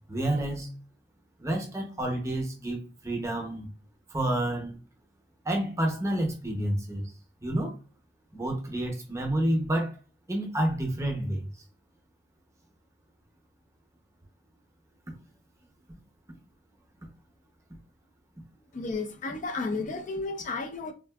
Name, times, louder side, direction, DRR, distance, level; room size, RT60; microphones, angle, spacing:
voice 1, 0.1-0.7 1.4-3.7 4.1-4.8 5.4-7.1 7.4-7.8 8.3-10.0 10.3-11.5 15.9-16.0, right 1 dB, 15° right, 0.6 m, -29 dB
voice 2, 18.7-20.9, left 3 dB, 45° left, 0.4 m, -32 dB
3.6 x 2.4 x 2.2 m
head